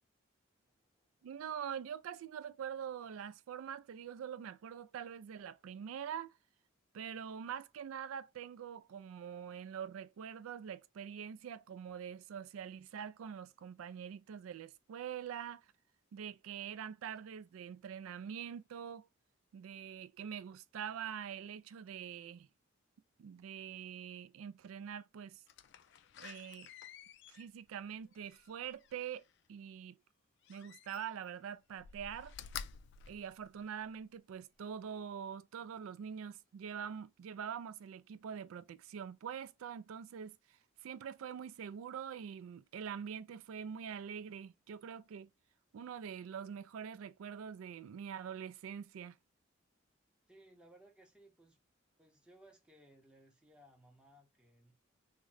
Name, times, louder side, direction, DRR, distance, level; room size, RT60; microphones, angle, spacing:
voice 1, 0.7-1.1 50.3-51.6 52.0-54.8, right 1 dB, 5° right, 0.6 m, -62 dB
voice 2, 1.2-6.3 6.9-15.6 16.1-19.1 19.5-22.5 23.2-25.4 26.2-26.7 27.3-30.0 30.5-32.3 33.1-45.3 45.7-49.2, right 8 dB, 85° right, 0.3 m, -44 dB
Slam, 25.5-29.3 30.4-31.4 31.7-34.0 34.5-34.6, left 8 dB, 55° left, 0.3 m, -51 dB
3.6 x 2.1 x 3.2 m
head